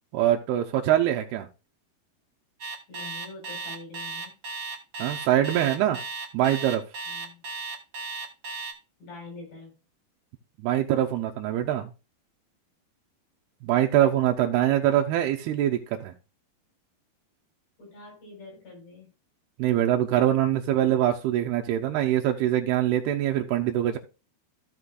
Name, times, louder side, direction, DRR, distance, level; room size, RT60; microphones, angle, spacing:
voice 1, 0.1-1.5 5.0-6.0 6.3-6.8 10.6-11.9 13.6-16.1 19.6-24.0, right 12 dB, 90° right, 2 dB, 2.7 m, -23 dB
Alarm, 2.6-8.7, right 4 dB, 55° right, 1.3 m, -35 dB
voice 2, 2.9-4.3 7.1-7.4 9.0-9.8 14.0-14.1 17.8-19.1, left 3 dB, 55° left, 0 dB, 5.6 m, -45 dB
15.0 x 6.0 x 2.4 m, 0.31 s
omnidirectional pair, 4.5 m